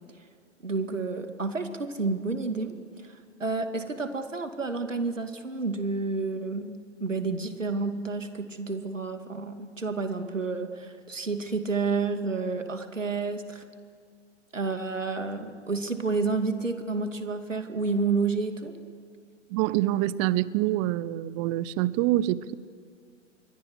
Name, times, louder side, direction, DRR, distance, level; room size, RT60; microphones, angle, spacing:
voice 1, 0.6-2.7 3.0-13.6 14.5-18.7, right 4 dB, 85° right, 7 dB, 2.6 m, -30 dB
voice 2, 19.5-22.5, right 15 dB, 25° right, 20 dB, 0.7 m, -26 dB
28.0 x 23.0 x 8.2 m, 2.1 s
figure-of-eight pair, 115°, 37 cm